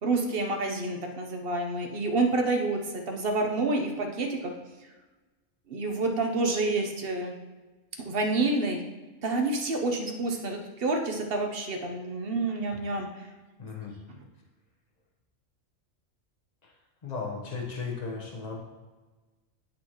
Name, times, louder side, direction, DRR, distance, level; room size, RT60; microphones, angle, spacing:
voice 1, 0.0-2.8 3.1-4.5 5.7-7.3 8.1-8.8 9.2-13.1, right 2 dB, 50° right, 4 dB, 1.0 m, -28 dB
voice 2, 13.6-14.0 16.6-16.7 17.0-18.6, left 4 dB, 35° left, 0 dB, 1.2 m, -36 dB
12.5 x 4.4 x 3.0 m, 1.2 s
omnidirectional pair, 1.3 m